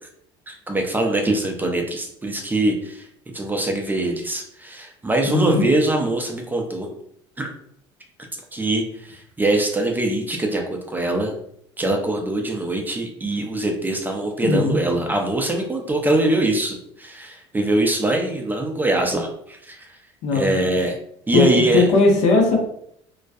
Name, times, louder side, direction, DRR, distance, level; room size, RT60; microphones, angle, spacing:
voice 1, 0.5-6.9 7.4-7.5 8.5-11.3 11.8-19.9 20.3-20.9 21.3-21.8, right 2 dB, 15° right, 2 dB, 0.4 m, -23 dB
voice 2, 5.2-5.6 14.4-14.8 20.2-20.7 21.3-22.6, left 3 dB, 65° left, 1 dB, 0.8 m, -18 dB
2.3 x 2.1 x 2.5 m, 0.69 s
supercardioid pair, 95°, 13 cm